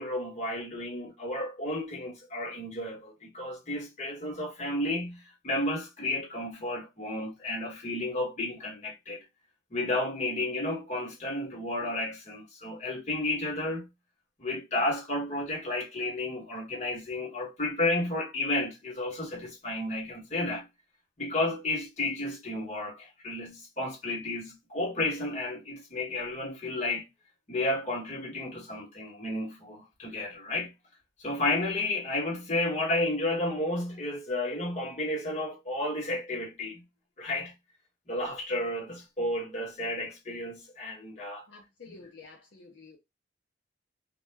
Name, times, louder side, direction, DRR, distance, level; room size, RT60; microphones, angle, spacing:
voice 1, 0.0-9.2 9.7-13.9 14.4-20.7 21.2-27.1 27.5-30.7 31.2-36.8 37.2-37.5 38.1-41.5, left 2 dB, 35° left, 1.0 m, -32 dB
voice 2, 41.5-43.0, left 4 dB, 65° left, 0.5 m, -50 dB
2.2 x 2.1 x 3.1 m
head